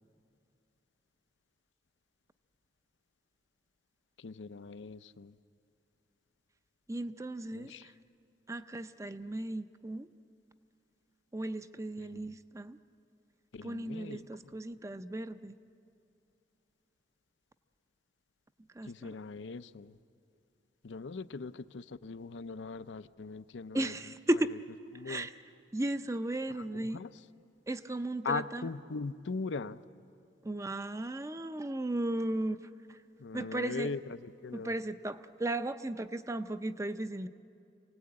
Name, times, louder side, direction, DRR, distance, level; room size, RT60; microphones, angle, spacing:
voice 1, 4.2-5.3 7.5-7.9 12.0-12.3 13.5-14.3 18.8-20.0 20.8-24.1 24.9-25.3 26.5-27.1 28.2-29.8 33.2-34.8, left 4 dB, 90° left, 12 dB, 0.5 m, -40 dB
voice 2, 6.9-7.7 8.5-10.1 11.3-12.8 13.6-15.5 18.8-19.1 23.7-24.5 25.1-25.3 25.7-27.0 27.7-28.7 30.4-32.6 33.3-34.0 34.5-37.3, right 1 dB, 15° right, 11 dB, 0.5 m, -35 dB
26.5 x 18.5 x 8.7 m, 2.5 s
head